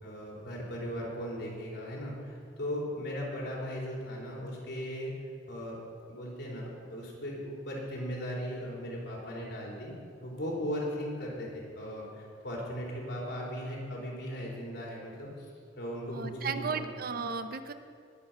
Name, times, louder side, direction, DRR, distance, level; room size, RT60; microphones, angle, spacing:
voice 1, 0.0-5.1 5.5-5.8 6.1-9.9 10.2-15.5 15.8-16.9, equal, 65° left, -3 dB, 3.9 m, -37 dB
voice 2, 16.1-17.7, right 5 dB, 55° right, 9 dB, 0.8 m, -35 dB
20.0 x 7.8 x 5.7 m, 2.3 s
head